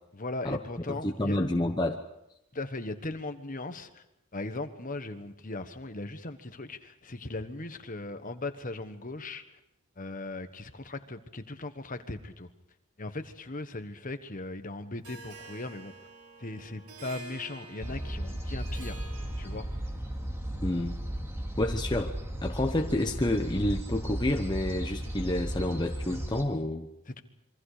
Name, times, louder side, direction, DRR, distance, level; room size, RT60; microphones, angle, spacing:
voice 1, 0.2-1.4 2.5-4.0 4.3-9.4 10.0-12.5 13.0-15.9 16.4-19.0 19.4-19.7 27.1-27.2, left 2 dB, 35° left, 9 dB, 1.3 m, -38 dB
voice 2, 0.9-2.0 20.6-21.0 21.6-22.1 22.4-26.9, left 1 dB, 20° left, 3 dB, 0.9 m, -29 dB
Harp, 15.0-20.0, right 3 dB, 85° right, 4.9 m, -49 dB
sound 1, 17.8-26.4, right 1 dB, 10° right, 2.3 m, -35 dB
27.0 x 23.5 x 5.0 m, 0.85 s
head